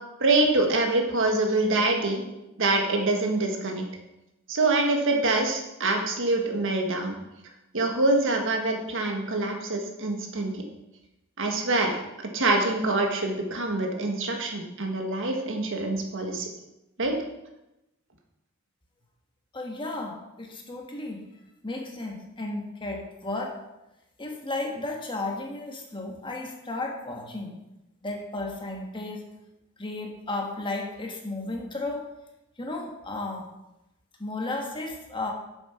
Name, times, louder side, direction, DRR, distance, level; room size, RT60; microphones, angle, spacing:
voice 1, 0.2-2.2 2.6-3.8 4.5-7.2 7.7-10.6 11.4-16.5 17.0-17.1, right 2 dB, 60° right, 3 dB, 1.7 m, -25 dB
voice 2, 19.5-21.2 21.6-23.6 24.2-27.6 28.0-29.3 29.8-32.1 32.6-33.5 34.2-35.3, left 2 dB, 20° left, 1 dB, 1.5 m, -34 dB
8.6 x 7.3 x 5.9 m, 0.93 s
head